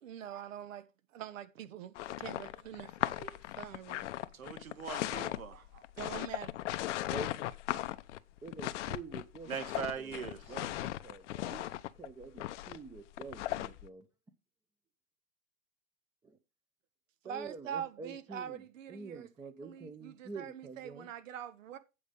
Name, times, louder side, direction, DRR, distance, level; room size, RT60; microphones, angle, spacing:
voice 1, 0.0-0.9 1.1-4.1 6.0-6.5 17.2-19.3 19.6-21.8, right 9 dB, 70° right, 1.4 m, -44 dB
sound 1, 2.0-13.9, left 15 dB, 60° left, 0.7 m, -38 dB
voice 2, 4.3-5.8 9.5-10.4, right 7 dB, 90° right, 1.8 m, -41 dB
voice 3, 8.4-11.7 11.9-14.1 16.2-16.4 17.2-21.1, right 4 dB, 10° right, 0.8 m, -47 dB
8.7 x 5.1 x 5.3 m
hypercardioid pair, 125°, 40 cm